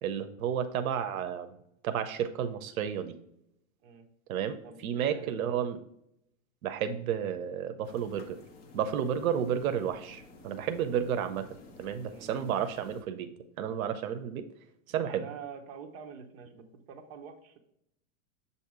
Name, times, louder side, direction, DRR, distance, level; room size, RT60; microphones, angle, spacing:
voice 1, 0.0-1.5 1.8-3.2 4.3-5.8 6.6-8.4 8.7-11.5 11.8-13.3 13.6-14.4 14.9-15.3, right 8 dB, 90° right, 8 dB, 0.7 m, -32 dB
voice 2, 4.6-5.6 12.1-12.5 14.9-17.6, right 6 dB, 45° right, 4 dB, 1.0 m, -47 dB
sound 1, 7.8-13.0, left 3 dB, 20° left, 0.4 m, -53 dB
7.2 x 2.8 x 4.7 m, 0.76 s
supercardioid pair, 155°, 41 cm